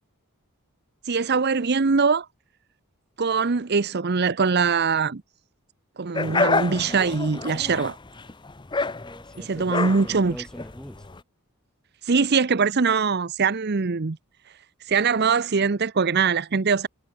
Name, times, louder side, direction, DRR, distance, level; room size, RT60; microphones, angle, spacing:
voice 1, 1.1-2.3 3.2-5.2 6.0-8.0 9.4-10.4 12.0-14.2 14.9-16.9, right 5 dB, 45° right, 0.7 m, -22 dB
sound 1, 6.1-11.2, left 3 dB, 20° left, 0.7 m, -28 dB
voice 2, 9.0-11.1, equal, 5° left, 3.4 m, -42 dB
head